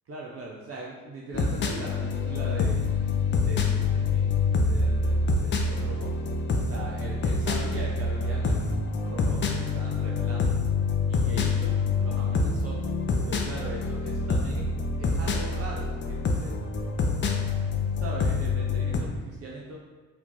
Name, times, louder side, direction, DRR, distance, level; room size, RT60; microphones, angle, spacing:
voice 1, 0.1-2.9 3.3-4.3 4.6-6.1 6.6-10.5 11.1-12.8 13.3-14.7 14.9-16.5 17.9-19.8, right 2 dB, 35° right, -3 dB, 0.7 m, -40 dB
sound 1, 1.3-19.0, left 4 dB, 25° left, 0.5 m, -26 dB
4.5 x 2.7 x 3.8 m, 1.3 s
figure-of-eight pair, 45°, 42 cm